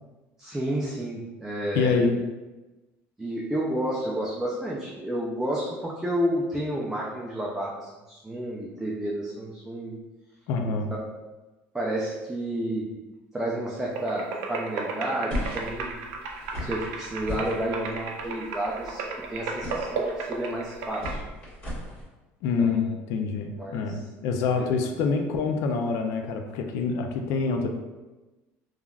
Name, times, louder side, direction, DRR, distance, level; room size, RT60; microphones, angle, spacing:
voice 1, 0.4-2.1 3.2-9.9 10.6-10.7 11.7-12.9 13.3-16.0 16.6-19.0 19.3-21.2 22.6-22.8 23.6-24.0 24.6-24.8, right 1 dB, 10° right, -4 dB, 0.3 m, -31 dB
voice 2, 1.8-2.2 10.5-10.9 22.4-27.7, left 4 dB, 70° left, 5 dB, 0.3 m, -26 dB
sound 1, 13.9-21.1, right 4 dB, 85° right, 0.4 m, -35 dB
sound 2, 15.3-22.0, left 1 dB, 40° left, 1.4 m, -37 dB
3.2 x 2.3 x 2.3 m, 1.1 s
cardioid pair, 130°, 5 cm